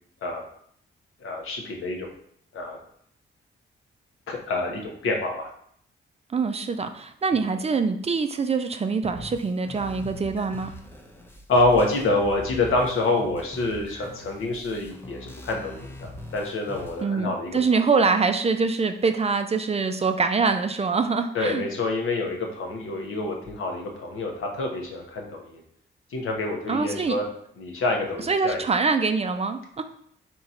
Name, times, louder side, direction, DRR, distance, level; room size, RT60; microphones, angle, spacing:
voice 1, 1.2-2.1 2.5-2.8 4.3-5.5 11.5-17.6 21.3-25.6 26.1-27.2 27.6-28.6, left 2 dB, 85° left, 1 dB, 1.0 m, -27 dB
voice 2, 6.3-10.7 17.0-21.6 26.7-27.2 28.2-29.8, right 4 dB, 30° right, 7 dB, 0.4 m, -24 dB
sound 1, 9.0-17.0, equal, 10° left, 0.6 m, -42 dB
3.7 x 3.0 x 4.2 m, 0.66 s
cardioid pair, 90°, 21 cm